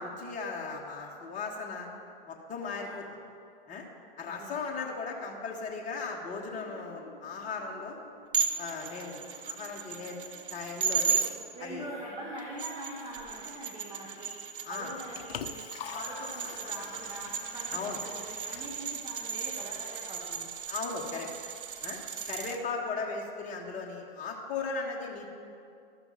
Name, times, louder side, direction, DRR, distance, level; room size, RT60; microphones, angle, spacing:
voice 1, 0.0-1.9 2.3-3.0 3.7-3.9 4.2-8.0 8.6-10.2 10.5-11.2 11.6-11.9 14.6-14.9 17.7-18.0 20.7-21.3 21.8-22.0 22.3-25.3, left 4 dB, 25° left, 0 dB, 1.4 m, -37 dB
voice 2, 2.6-3.0 4.2-4.6 11.5-20.5, right 1 dB, 15° right, -4 dB, 1.6 m, -43 dB
sound 1, 4.9-15.8, right 1 dB, 40° right, 2.9 m, -59 dB
sound 2, 8.3-11.3 12.4-22.6, right 6 dB, 60° right, 1.0 m, -35 dB
Liquid, 14.8-19.8, left 9 dB, 75° left, 0.6 m, -45 dB
12.5 x 6.7 x 5.7 m, 2.4 s
hypercardioid pair, 110°, 30 cm